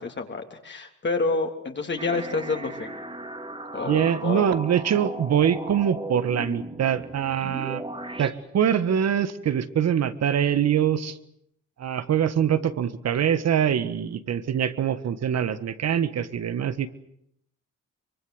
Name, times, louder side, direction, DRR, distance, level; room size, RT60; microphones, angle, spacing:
voice 1, 0.0-2.9 3.7-4.5, left 3 dB, 35° left, 3 dB, 3.3 m, -28 dB
sound 1, 2.0-8.3, right 1 dB, 20° right, 3.4 m, -37 dB
voice 2, 3.8-7.8 8.2-11.2 11.8-16.9, right 9 dB, 60° right, 12 dB, 1.7 m, -24 dB
24.5 x 23.5 x 8.0 m, 0.72 s
cardioid pair, 90°, 30 cm